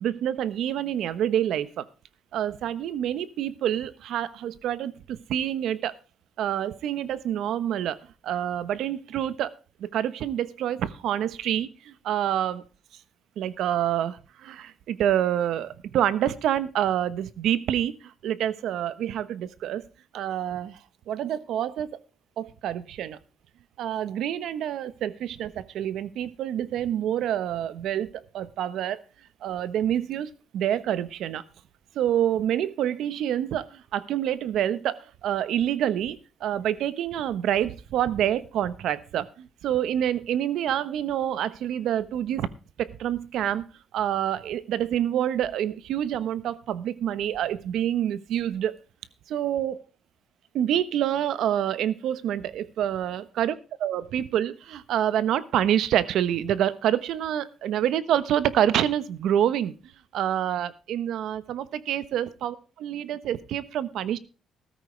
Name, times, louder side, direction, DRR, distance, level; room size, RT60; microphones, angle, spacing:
voice 1, 0.0-1.9 2.3-5.9 6.4-8.0 8.2-9.5 9.8-12.6 13.4-19.8 20.1-20.8 21.1-21.9 22.4-23.2 23.8-29.0 29.4-31.4 31.9-42.5 42.8-43.6 43.9-48.8 49.3-49.8 50.5-59.7 60.1-64.2, right 10 dB, 80° right, 1.1 m, -27 dB
14.0 x 13.5 x 3.3 m
cardioid pair, 90°, 0 cm